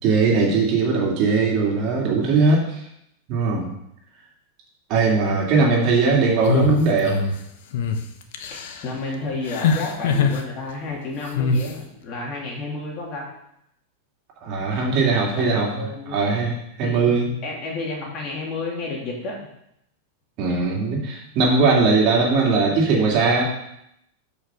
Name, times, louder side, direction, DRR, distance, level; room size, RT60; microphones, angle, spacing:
voice 1, 0.0-2.8 3.3-3.7 4.9-7.2 14.4-17.3 20.4-23.4, right 4 dB, 45° right, -2 dB, 2.6 m, -20 dB
sound 1, 6.4-7.3 7.7-8.0 8.3-8.8 9.5-10.4 11.3-11.7, left 4 dB, 70° left, 1.0 m, -22 dB
voice 2, 8.5-13.3 15.1-15.5 15.8-16.2 16.8-19.4, left 3 dB, 40° left, -2 dB, 2.8 m, -31 dB
6.7 x 5.3 x 6.3 m, 0.78 s
supercardioid pair, 135°, 0 cm